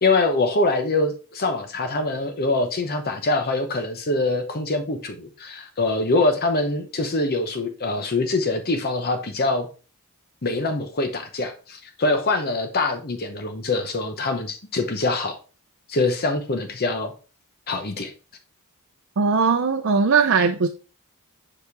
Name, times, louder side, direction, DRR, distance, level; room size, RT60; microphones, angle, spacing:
voice 1, 0.0-9.7 10.4-15.4 15.9-17.1 17.7-18.1, left 2 dB, 45° left, 0.9 m, -24 dB
voice 2, 19.2-20.7, right 5 dB, 60° right, 0.5 m, -19 dB
7.2 x 5.0 x 3.4 m
head